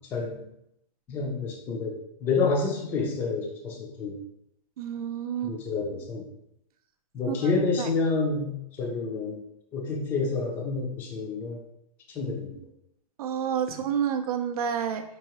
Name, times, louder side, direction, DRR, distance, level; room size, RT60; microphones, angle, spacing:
voice 1, 0.1-0.4 1.1-1.9 2.2-4.2 5.4-6.2 7.1-9.4 9.7-11.6 12.1-12.6, left 4 dB, 10° left, 0 dB, 0.3 m, -28 dB
voice 2, 4.8-5.6 7.3-7.4 7.8-7.9 13.2-15.0, right 8 dB, 80° right, 7 dB, 0.4 m, -29 dB
4.6 x 2.8 x 2.9 m, 0.78 s
hypercardioid pair, 165°, 19 cm